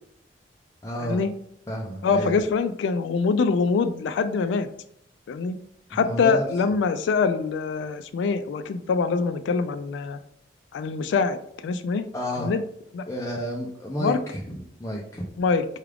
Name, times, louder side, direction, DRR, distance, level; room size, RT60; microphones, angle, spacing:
voice 1, 0.8-1.2 1.7-2.3 5.9-6.5 12.1-12.5 13.1-15.3, equal, 20° left, -3 dB, 0.5 m, -31 dB
voice 2, 2.0-4.7 5.3-5.6 5.9-10.2 10.7-11.4 11.6-12.0 12.4-12.6 12.9-13.0 14.0-14.2 15.4-15.7, left 5 dB, 90° left, 9 dB, 0.3 m, -24 dB
4.7 x 2.4 x 3.3 m, 0.69 s
head